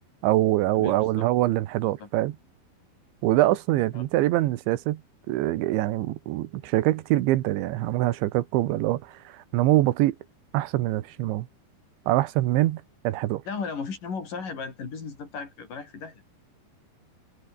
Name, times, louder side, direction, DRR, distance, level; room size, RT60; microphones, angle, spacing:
voice 1, 0.2-2.4 3.2-5.0 5.3-10.2 10.5-11.5 12.1-13.4, right 16 dB, 90° right, 3.5 m, -24 dB
voice 2, 0.7-1.2 1.8-2.1 3.9-4.1 13.5-16.3, left 5 dB, 50° left, 6.2 m, -36 dB
omnidirectional pair, 5.2 m